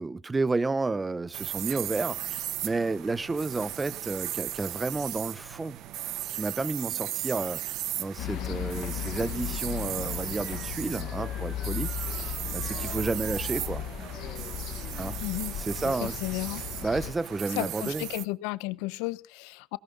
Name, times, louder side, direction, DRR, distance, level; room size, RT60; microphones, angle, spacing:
voice 1, 0.0-5.8 6.3-11.9 12.5-13.8 15.0-15.2 15.6-16.2 16.8-18.1, right 3 dB, 15° right, 0.7 m, -31 dB
sound 1, 1.3-18.3, right 13 dB, 65° right, 0.8 m, -37 dB
sound 2, 8.2-17.1, left 12 dB, 65° left, 1.3 m, -36 dB
sound 3, 10.3-15.3, right 5 dB, 40° right, 2.8 m, -51 dB
voice 2, 15.2-15.6 15.8-16.6 17.5-19.8, left 21 dB, 90° left, 0.8 m, -33 dB
18.0 x 17.5 x 3.8 m
cardioid pair, 115°, 0 cm